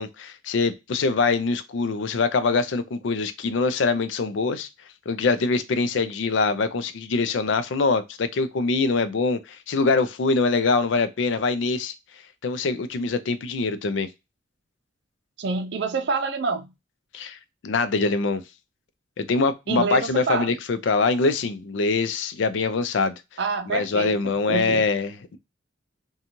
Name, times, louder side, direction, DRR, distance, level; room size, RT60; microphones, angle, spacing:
voice 1, 0.0-4.7 5.1-11.9 12.4-14.1 17.1-17.4 17.6-18.4 19.2-23.2 23.7-25.4, left 4 dB, 70° left, 0.4 m, -24 dB
voice 2, 15.4-16.7 19.7-20.5 23.4-24.8, right 4 dB, 60° right, 0.5 m, -27 dB
2.6 x 2.3 x 2.8 m
head